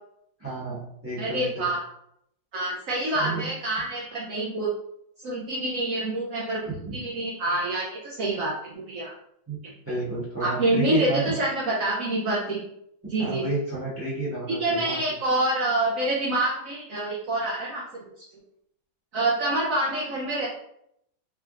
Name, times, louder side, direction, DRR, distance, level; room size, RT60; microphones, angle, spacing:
voice 1, 0.4-1.7 3.0-3.4 6.6-6.9 9.5-9.6 9.9-11.4 13.2-15.0, right 3 dB, 10° right, -6 dB, 0.8 m, -31 dB
voice 2, 1.2-1.8 2.5-4.7 5.2-6.6 6.9-9.1 9.6-9.7 10.4-12.6 13.1-13.4 14.5-18.1 19.1-20.5, right 1 dB, 80° right, -4 dB, 0.7 m, -26 dB
3.7 x 3.4 x 2.4 m, 0.74 s
omnidirectional pair, 2.2 m